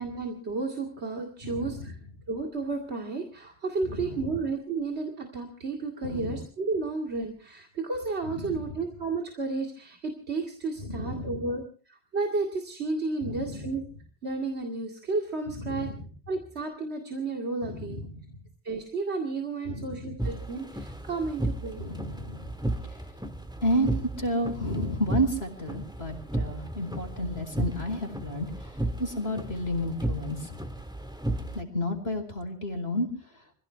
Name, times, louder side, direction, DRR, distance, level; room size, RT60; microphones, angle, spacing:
voice 1, 0.0-1.9 2.3-13.8 14.2-15.9 16.3-18.0 18.6-21.9, right 3 dB, 80° right, 2 dB, 2.6 m, -32 dB
voice 2, 1.4-1.9 3.9-4.3 6.0-6.3 8.3-8.6 10.8-11.4 13.2-13.7 15.6-16.1 17.6-18.1 19.6-20.2 21.8-22.5 22.8-22.9 23.6-30.6 31.4-33.1, equal, 70° left, 5 dB, 4.8 m, -31 dB
sound 1, 20.2-31.6, right 1 dB, 5° right, 1.7 m, -34 dB
26.5 x 16.5 x 3.4 m, 0.39 s
omnidirectional pair, 1.1 m